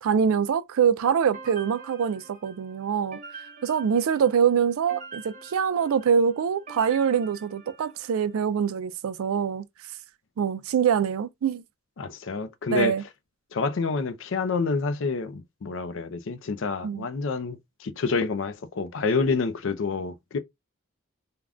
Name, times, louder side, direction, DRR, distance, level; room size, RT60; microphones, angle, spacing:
voice 1, 0.0-3.2 3.6-9.6 10.4-11.6 12.7-13.0 16.8-17.1, right 7 dB, 80° right, 0.4 m, -24 dB
sound 1, 1.3-8.3, right 3 dB, 35° right, 0.9 m, -46 dB
voice 2, 12.0-12.9 13.5-20.4, left 4 dB, 65° left, 0.5 m, -28 dB
3.4 x 2.2 x 2.4 m
head